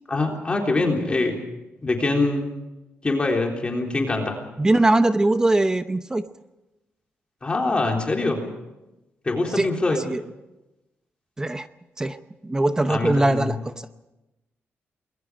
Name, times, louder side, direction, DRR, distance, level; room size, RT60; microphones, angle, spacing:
voice 1, 0.1-1.4 1.8-2.5 3.0-4.4 7.4-8.4 9.2-10.0 12.9-13.6, left 2 dB, 25° left, 1 dB, 3.8 m, -24 dB
voice 2, 4.6-6.2 9.6-9.7 10.0-10.2 11.4-11.7 12.0-12.2 12.4-13.9, right 2 dB, 15° right, 10 dB, 0.8 m, -21 dB
29.0 x 21.5 x 5.1 m, 0.99 s
cardioid pair, 130°, 4 cm